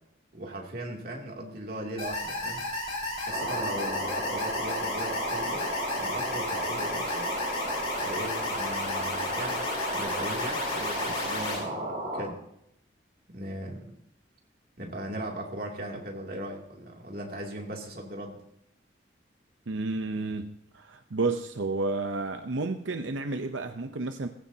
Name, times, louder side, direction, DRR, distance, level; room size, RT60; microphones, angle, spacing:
voice 1, 0.3-2.6 3.2-5.7 6.0-7.3 8.0-9.7 9.9-12.4 13.3-13.9 14.8-18.4, right 1 dB, 50° right, 0 dB, 2.8 m, -38 dB
sound 1, 2.0-11.6, left 2 dB, 35° left, 4.6 m, -33 dB
sound 2, 3.3-12.2, right 1 dB, 30° right, 7.6 m, -33 dB
voice 2, 19.7-24.3, right 3 dB, 90° right, 6 dB, 0.8 m, -31 dB
20.0 x 15.5 x 2.9 m, 0.75 s
head